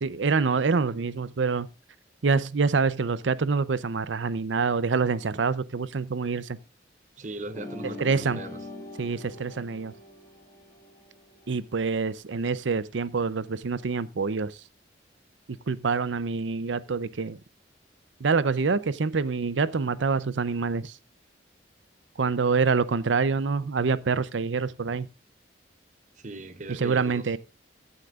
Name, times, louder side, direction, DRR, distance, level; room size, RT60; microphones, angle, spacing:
voice 1, 0.0-1.7 2.2-6.6 8.0-8.4 9.0-9.9 11.5-14.6 15.5-17.4 18.2-20.9 22.2-25.1 26.7-27.4, right 4 dB, 80° right, 0.6 m, -26 dB
voice 2, 7.2-8.6 26.2-27.4, right 2 dB, 40° right, 0.9 m, -39 dB
sound 1, 7.5-12.2, left 1 dB, 15° left, 2.0 m, -43 dB
14.5 x 9.8 x 2.4 m
head